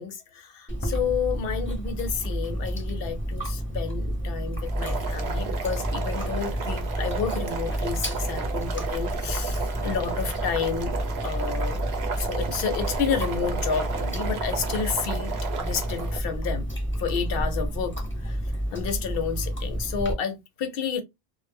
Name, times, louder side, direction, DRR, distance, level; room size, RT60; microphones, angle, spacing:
voice 1, 0.0-10.9 11.2-11.8 12.2-16.6 17.0-18.4 18.7-21.0, left 6 dB, 70° left, 0.8 m, -30 dB
Chewing mastication, 0.7-20.1, equal, 15° left, 0.8 m, -30 dB
Boiling, 4.6-16.2, right 5 dB, 85° right, 0.9 m, -33 dB
2.0 x 2.0 x 3.3 m
omnidirectional pair, 1.0 m